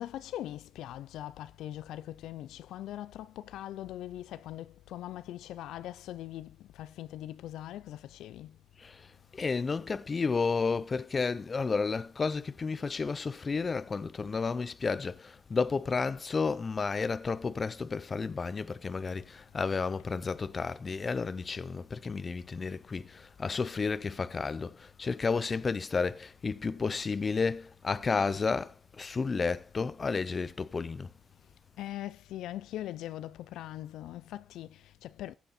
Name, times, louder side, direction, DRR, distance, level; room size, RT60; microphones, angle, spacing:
voice 1, 0.0-8.6 31.8-35.4, left 13 dB, 85° left, 0.5 m, -41 dB
voice 2, 9.3-31.1, left 4 dB, 35° left, 0.7 m, -32 dB
14.5 x 8.2 x 4.2 m
cardioid pair, 90°, 0 cm